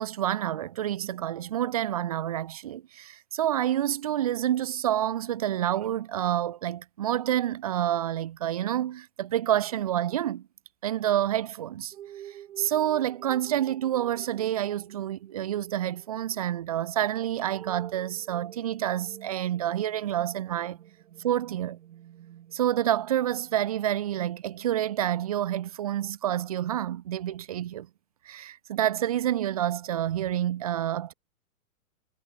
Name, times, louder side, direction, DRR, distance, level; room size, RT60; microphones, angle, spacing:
voice 1, 0.0-10.5 10.8-11.9 12.3-20.8 21.2-21.8 22.5-27.9 28.3-31.1, right 11 dB, 25° right, 0.5 m, -28 dB
sound 1, 11.9-25.1, right 11 dB, 60° right, 2.6 m, -49 dB
hypercardioid pair, 160°, 44 cm